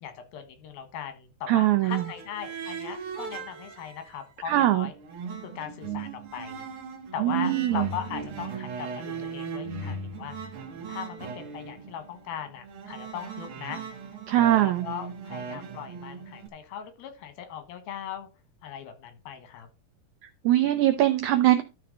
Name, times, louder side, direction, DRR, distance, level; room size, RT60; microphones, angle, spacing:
voice 1, 0.0-4.9 5.4-6.7 7.1-10.4 10.9-13.8 14.6-18.3 18.6-19.7, left 9 dB, 85° left, 9 dB, 3.3 m, -39 dB
voice 2, 1.5-2.1 4.5-4.9 7.2-7.9 14.3-14.9 20.2-21.6, right 13 dB, 85° right, 9 dB, 1.7 m, -22 dB
sound 1, 1.9-4.2 4.5-16.5, right 5 dB, 55° right, 1.6 m, -38 dB
12.5 x 4.3 x 5.2 m, 0.29 s
omnidirectional pair, 4.1 m